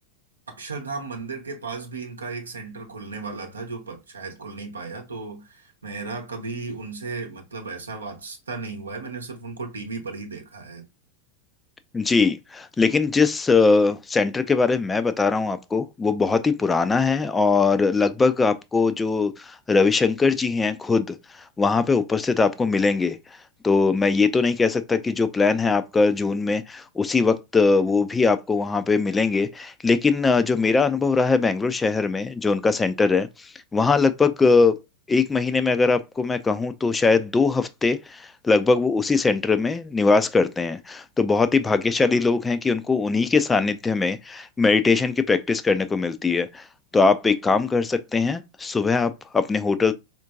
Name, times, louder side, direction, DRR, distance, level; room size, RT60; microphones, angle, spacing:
voice 1, 0.5-10.8, right 4 dB, 75° right, 0.8 m, -35 dB
voice 2, 11.9-21.2 21.6-23.2 23.6-34.8 35.1-46.6 46.9-49.9, left 4 dB, 15° left, 0.4 m, -21 dB
4.3 x 2.5 x 2.3 m
figure-of-eight pair, 90°, 0 cm